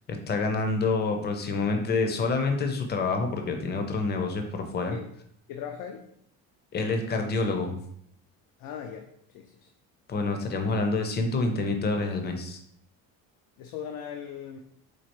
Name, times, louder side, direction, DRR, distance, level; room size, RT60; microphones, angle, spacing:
voice 1, 0.1-4.4 4.7-5.0 6.7-7.8 10.1-12.6, left 3 dB, 30° left, 5 dB, 0.6 m, -27 dB
voice 2, 5.5-6.1 8.6-9.1 9.3-9.7 13.6-14.6, left 8 dB, 80° left, 3 dB, 0.5 m, -38 dB
4.5 x 2.4 x 2.9 m, 0.70 s
cardioid pair, 105°, 35 cm